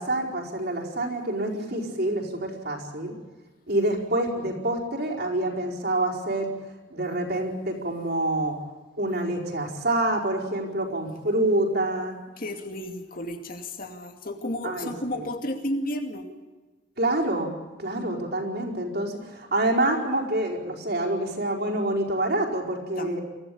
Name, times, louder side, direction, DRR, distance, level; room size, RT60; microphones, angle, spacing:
voice 1, 0.0-3.1 3.7-6.5 6.9-8.5 9.0-12.2 14.6-14.9 15.2-15.3 17.0-17.5 17.8-23.2, right 1 dB, 50° right, 0 dB, 4.8 m, -27 dB
voice 2, 12.4-16.3 23.0-23.2, left 1 dB, 45° left, 5 dB, 2.5 m, -32 dB
24.5 x 16.0 x 8.6 m, 1.2 s
head